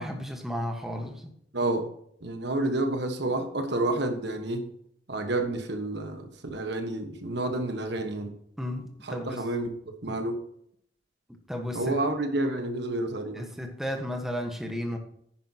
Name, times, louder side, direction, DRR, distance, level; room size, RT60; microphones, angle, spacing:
voice 1, 0.0-1.3 8.6-9.4 11.5-11.9 13.3-15.0, equal, ahead, 2 dB, 1.4 m, -33 dB
voice 2, 1.5-1.9 2.2-4.7 5.1-8.3 9.0-9.7 10.0-10.4 11.7-13.5, right 2 dB, 65° right, 6 dB, 1.4 m, -29 dB
10.0 x 10.0 x 2.9 m, 0.68 s
head